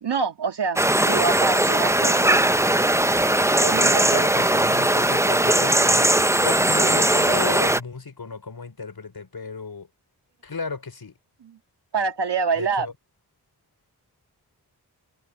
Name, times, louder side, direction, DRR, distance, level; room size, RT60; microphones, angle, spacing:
voice 1, 0.0-2.5 3.6-4.5 11.4-11.6 11.9-12.9, right 5 dB, 85° right, 1.8 m, -26 dB
sound 1, 0.8-7.8, right 1 dB, 5° right, 0.6 m, -19 dB
voice 2, 3.8-9.9 10.4-11.1 12.6-12.9, left 4 dB, 65° left, 4.1 m, -34 dB
cardioid pair, 40°, 40 cm